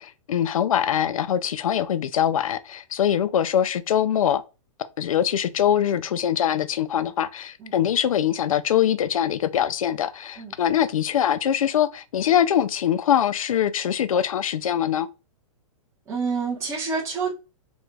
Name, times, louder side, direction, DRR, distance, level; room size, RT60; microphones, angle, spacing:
voice 1, 0.0-4.4 5.0-15.1, left 10 dB, 85° left, 0.4 m, -23 dB
voice 2, 16.1-17.3, right 5 dB, 15° right, 1.0 m, -27 dB
3.0 x 3.0 x 2.2 m
hypercardioid pair, 130°, 17 cm